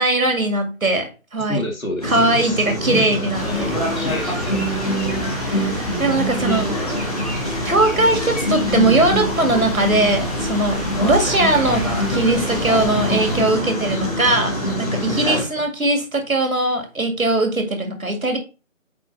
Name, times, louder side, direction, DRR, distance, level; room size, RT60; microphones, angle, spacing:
voice 1, 0.0-1.6 2.0-3.8 5.3-18.4, right 2 dB, 85° right, 5 dB, 2.2 m, -20 dB
voice 2, 1.5-4.9 15.3-15.7, left 1 dB, 90° left, 3 dB, 2.0 m, -30 dB
sound 1, 2.0-15.4, equal, 30° left, 1.7 m, -24 dB
sound 2, 3.3-13.4, equal, ahead, 0.8 m, -31 dB
sound 3, 9.8-14.8, left 1 dB, 45° left, 2.0 m, -33 dB
8.4 x 3.0 x 4.1 m, 0.32 s
figure-of-eight pair, 175°, 40 cm